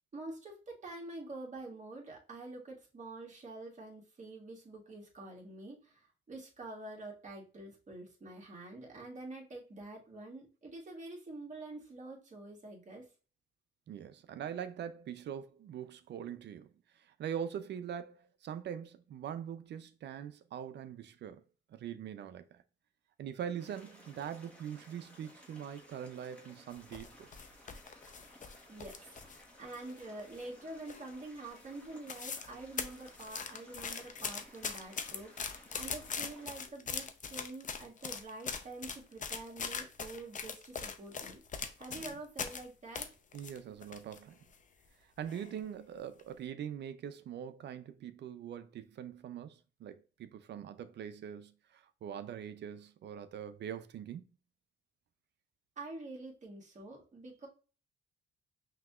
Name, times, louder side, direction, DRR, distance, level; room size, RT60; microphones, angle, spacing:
voice 1, 0.1-13.1 28.7-41.4 41.8-43.1 55.8-57.5, right 2 dB, 40° right, 1.7 m, -47 dB
voice 2, 13.9-21.4 21.7-22.6 23.2-27.3 43.3-44.4 45.2-54.3, right 9 dB, 60° right, 0.5 m, -43 dB
sound 1, 23.6-36.7, equal, 5° left, 1.3 m, -58 dB
sound 2, 26.7-29.4 29.7-30.5 30.9-31.2 31.6-31.7 31.9-32.5 32.8-42.6 43.0-44.2 44.5-44.6 45.3-45.6 46.0-46.2, left 6 dB, 40° left, 0.6 m, -41 dB
5.7 x 2.8 x 2.3 m
cardioid pair, 90°, 20 cm